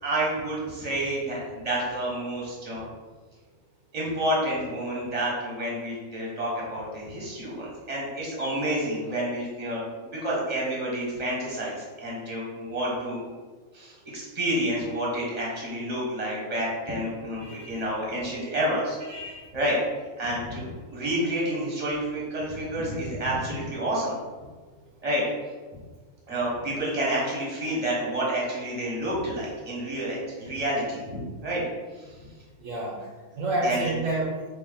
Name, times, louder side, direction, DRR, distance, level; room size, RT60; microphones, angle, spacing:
voice 1, 0.0-2.8 3.9-9.8 10.1-13.2 13.7-19.0 19.5-19.8 20.2-24.1 25.0-25.2 26.3-31.6 31.9-32.1 33.6-33.8, right 1 dB, 30° right, -4 dB, 1.3 m, -29 dB
voice 2, 17.4-17.8 19.1-19.5 32.6-33.0 33.4-34.4, right 2 dB, 70° right, -3 dB, 1.1 m, -29 dB
4.1 x 3.0 x 4.0 m, 1.4 s
omnidirectional pair, 1.4 m